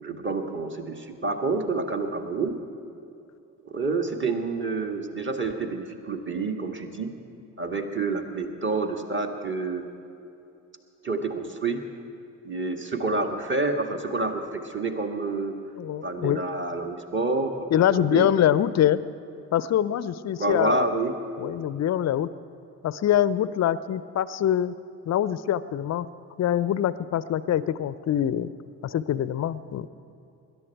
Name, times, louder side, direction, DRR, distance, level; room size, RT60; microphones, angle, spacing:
voice 1, 0.0-2.6 3.6-7.1 7.6-9.8 11.0-11.9 12.4-15.6 16.0-18.3 20.3-21.1, right 3 dB, 25° right, 4 dB, 1.7 m, -28 dB
voice 2, 15.8-16.4 17.7-19.0 19.5-20.9 21.4-22.3 22.8-24.7 25.1-26.1 26.4-28.5 28.8-29.9, left 10 dB, 40° left, 17 dB, 0.6 m, -24 dB
21.0 x 11.0 x 4.7 m, 2.7 s
figure-of-eight pair, 40°, 43 cm